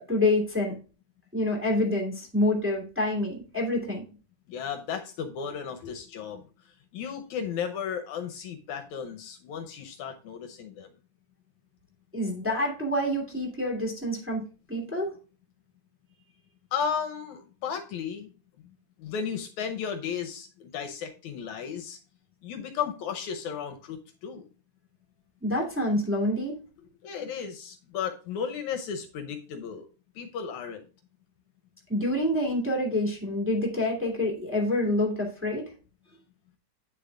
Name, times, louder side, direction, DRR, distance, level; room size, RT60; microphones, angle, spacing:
voice 1, 0.1-0.7 1.3-4.0 12.1-14.4 14.7-15.1 25.4-26.6 31.9-35.7, left 1 dB, 5° right, 0 dB, 2.0 m, -27 dB
voice 2, 4.5-6.4 6.9-10.9 16.7-18.3 19.0-22.0 22.4-24.5 27.0-29.9 30.2-30.9, left 7 dB, 75° left, 6 dB, 2.0 m, -34 dB
9.3 x 6.8 x 2.4 m, 0.35 s
omnidirectional pair, 3.6 m